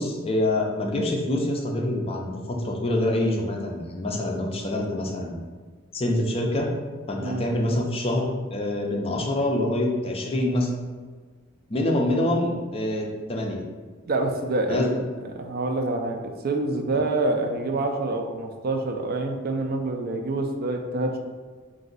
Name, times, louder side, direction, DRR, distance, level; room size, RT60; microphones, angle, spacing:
voice 1, 0.0-5.4 5.9-6.7 7.1-10.7 11.7-13.6 14.7-14.9, left 1 dB, 25° left, 0 dB, 0.5 m, -26 dB
voice 2, 14.1-14.9 15.4-21.2, right 2 dB, 45° right, 4 dB, 0.4 m, -26 dB
3.9 x 2.6 x 3.9 m, 1.5 s
head